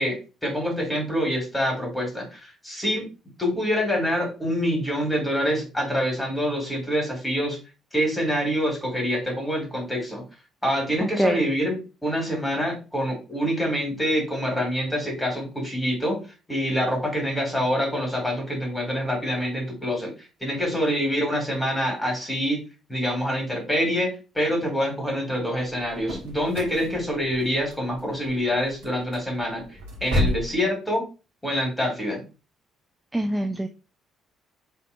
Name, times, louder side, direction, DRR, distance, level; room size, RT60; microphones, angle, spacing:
voice 1, 0.0-3.1 3.4-7.6 7.9-10.2 10.6-11.8 12.0-16.2 16.5-20.1 20.4-22.6 22.9-29.6 30.0-31.0 31.4-32.2, equal, 10° left, 0 dB, 2.7 m, -26 dB
voice 2, 11.0-11.4 33.1-33.7, right 1 dB, 10° right, 6 dB, 0.5 m, -24 dB
sound 1, 25.6-30.6, left 1 dB, 70° right, 1.2 m, -31 dB
5.6 x 3.6 x 2.4 m, 0.31 s
figure-of-eight pair, 45°, 0 cm